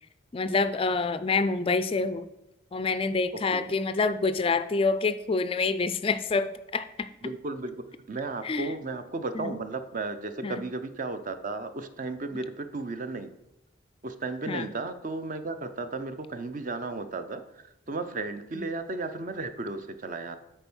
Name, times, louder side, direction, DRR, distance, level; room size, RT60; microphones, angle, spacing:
voice 1, 0.3-2.3 2.7-7.1 8.4-8.7 9.3-9.6 10.4-10.6 14.5-14.7 18.5-18.6, left 4 dB, 30° left, 13 dB, 0.3 m, -27 dB
voice 2, 7.2-7.8 8.1-13.3 14.0-20.4, right 3 dB, 45° right, 9 dB, 0.7 m, -34 dB
8.9 x 4.4 x 6.1 m, 0.93 s
head